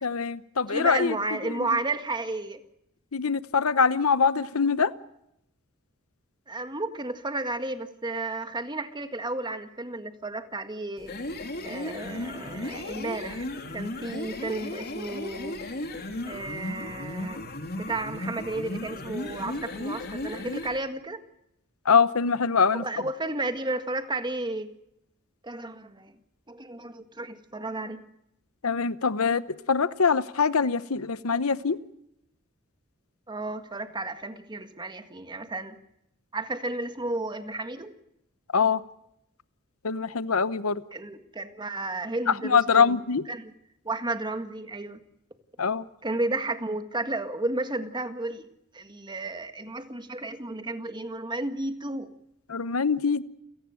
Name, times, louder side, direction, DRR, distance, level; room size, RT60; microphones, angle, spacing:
voice 1, 0.0-1.2 1.4-1.7 3.1-4.9 21.9-22.8 28.6-31.8 38.5-38.8 39.8-40.8 42.4-43.2 45.6-45.8 52.5-53.2, left 5 dB, 85° left, 16 dB, 0.9 m, -23 dB
voice 2, 0.7-2.6 6.5-11.1 11.6-13.5 13.7-15.6 16.2-17.4 17.7-21.2 22.7-24.7 25.4-26.1 26.5-28.0 33.3-35.8 36.3-38.0 40.9-43.0 43.3-43.5 43.8-45.0 46.0-48.5 48.7-52.1, right 2 dB, 20° right, 9 dB, 1.7 m, -33 dB
sound 1, 11.0-20.8, left 1 dB, 50° left, 3.3 m, -35 dB
29.0 x 17.5 x 6.4 m, 0.81 s
head